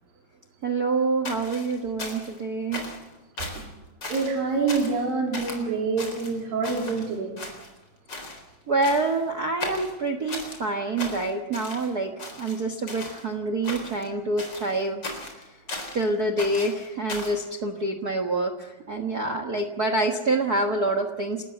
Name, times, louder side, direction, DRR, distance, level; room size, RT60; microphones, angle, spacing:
voice 1, 0.6-2.8 8.7-12.1 12.4-15.0 15.9-21.5, right 2 dB, 60° right, 7 dB, 1.0 m, -26 dB
sound 1, 1.2-2.4 2.7-3.1 3.4-3.7 4.0-4.4 4.7-5.0 5.3-5.6 6.0-7.1 7.4-8.4 8.8-9.2 9.6-10.6 11.0-11.9 12.2-13.2 13.6-14.1 14.4-16.0 16.4-17.4, left 2 dB, 30° left, 4.4 m, -36 dB
voice 2, 4.1-7.3, right 4 dB, 85° right, 1 dB, 4.8 m, -26 dB
29.5 x 14.0 x 7.9 m, 1.0 s
omnidirectional pair, 4.0 m